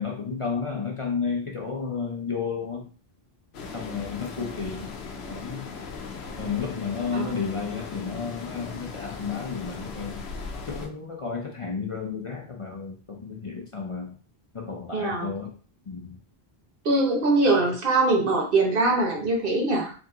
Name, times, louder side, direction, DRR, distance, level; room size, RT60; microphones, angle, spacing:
voice 1, 0.0-2.9 3.7-4.9 5.3-5.7 6.4-10.2 10.6-14.2 14.5-15.5 15.9-16.2, left 5 dB, 35° left, -1 dB, 0.6 m, -32 dB
sound 1, 3.5-10.9, left 5 dB, 85° left, 0.9 m, -38 dB
voice 2, 7.1-7.5 14.9-15.3 16.8-19.9, right 2 dB, 60° right, 0 dB, 1.2 m, -23 dB
3.6 x 2.8 x 3.7 m, 0.39 s
omnidirectional pair, 1.0 m